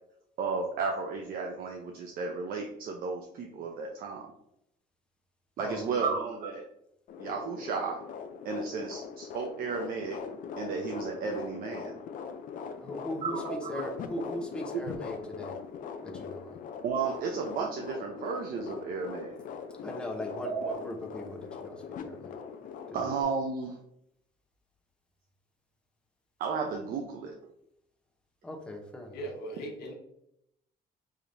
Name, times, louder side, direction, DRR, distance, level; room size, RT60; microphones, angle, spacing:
voice 1, 0.4-4.3 5.6-6.6 7.2-8.0 8.4-10.2 10.6-11.9 13.2-13.8 14.2-14.3 14.7-14.8 16.8-19.3 20.4-20.6 22.9-23.8 26.4-27.3, right 5 dB, 60° right, 2 dB, 0.6 m, -33 dB
voice 2, 5.6-6.1 12.8-15.5 16.0-16.6 19.8-22.3 23.0-23.1 28.4-29.2, left 1 dB, 5° left, 1 dB, 0.8 m, -39 dB
sound 1, 7.1-23.2, left 6 dB, 55° left, 0.5 m, -41 dB
voice 3, 29.1-29.9, right 1 dB, 75° left, 1 dB, 1.1 m, -38 dB
5.0 x 2.8 x 2.6 m, 0.78 s
cardioid pair, 110°, 17 cm